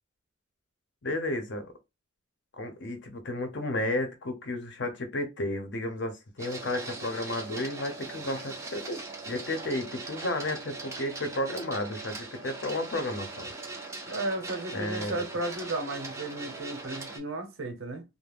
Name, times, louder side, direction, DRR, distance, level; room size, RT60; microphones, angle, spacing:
voice 1, 1.0-1.7 2.5-9.0 9.3-13.5 14.7-15.1, left 1 dB, 60° left, 0.7 m, -32 dB
Printer, 6.4-17.2, right 3 dB, 15° right, 0.4 m, -40 dB
voice 2, 14.1-18.0, right 2 dB, 90° right, 0.8 m, -34 dB
2.4 x 2.1 x 3.3 m
head